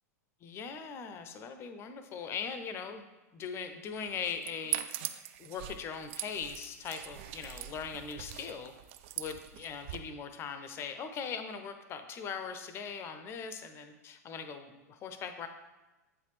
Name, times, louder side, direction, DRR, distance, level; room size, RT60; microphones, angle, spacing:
voice 1, 0.4-3.0 3.3-4.8 5.4-8.7 9.2-15.5, left 6 dB, 30° left, 9 dB, 0.6 m, -40 dB
sound 1, 4.1-10.0, right 13 dB, 45° right, 0.4 m, -41 dB
8.0 x 4.0 x 3.2 m, 1.1 s
figure-of-eight pair, 95°, 9 cm